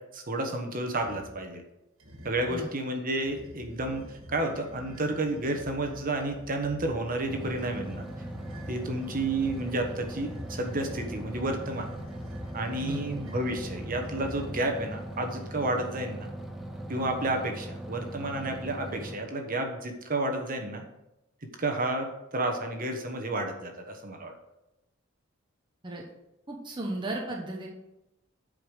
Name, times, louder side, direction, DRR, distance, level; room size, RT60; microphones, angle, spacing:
voice 1, 0.1-1.6 2.2-4.0 4.3-8.1 8.7-11.9 12.5-16.3 16.9-20.8 21.6-24.3, right 2 dB, 45° right, 4 dB, 1.3 m, -31 dB
sound 1, 0.9-1.4 2.0-2.6 3.2-15.2, equal, 70° right, 2.0 m, -46 dB
sound 2, 7.3-19.2, right 1 dB, ahead, 0.8 m, -40 dB
voice 2, 26.5-27.7, right 2 dB, 25° right, -1 dB, 1.0 m, -35 dB
8.5 x 5.2 x 6.4 m, 0.92 s
head